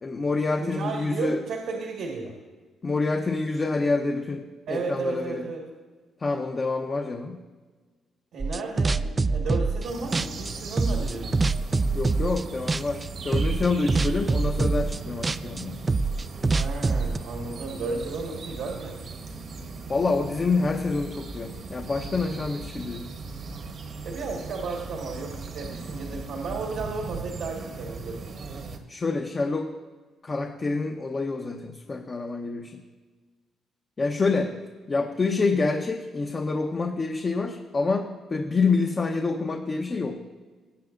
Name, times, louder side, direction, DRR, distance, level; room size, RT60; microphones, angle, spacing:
voice 1, 0.0-1.4 2.8-5.5 6.2-7.4 11.9-15.9 19.9-23.1 28.9-29.7 30.2-32.8 34.0-34.6 34.9-40.2, left 3 dB, 35° left, 3 dB, 0.8 m, -27 dB
voice 2, 0.6-2.3 4.7-5.6 8.3-11.4 16.5-19.0 24.0-28.3, right 3 dB, 80° right, 0 dB, 1.6 m, -33 dB
sound 1, 8.4-9.9 10.1-12.4 12.7-13.1 13.3-17.2, right 3 dB, 25° right, 0.3 m, -25 dB
sound 2, 9.8-28.8, right 4 dB, 60° right, 1.2 m, -38 dB
19.0 x 7.4 x 2.5 m, 1.4 s
cardioid pair, 90°, 0 cm